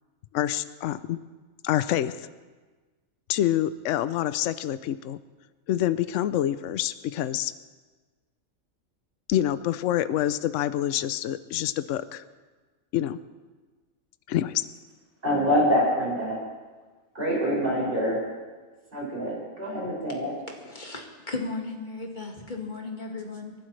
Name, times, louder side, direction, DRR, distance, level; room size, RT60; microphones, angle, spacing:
voice 1, 0.3-1.2 1.6-2.1 3.3-5.2 5.7-7.5 9.3-12.2 12.9-13.2 14.3-14.6, left 12 dB, 70° left, 14 dB, 0.9 m, -26 dB
voice 2, 15.2-16.4 17.1-18.2 18.9-20.3, equal, 40° right, -5 dB, 6.2 m, -25 dB
voice 3, 20.6-23.5, left 3 dB, 35° left, 1 dB, 2.0 m, -35 dB
28.5 x 11.5 x 3.3 m, 1.3 s
omnidirectional pair, 1.5 m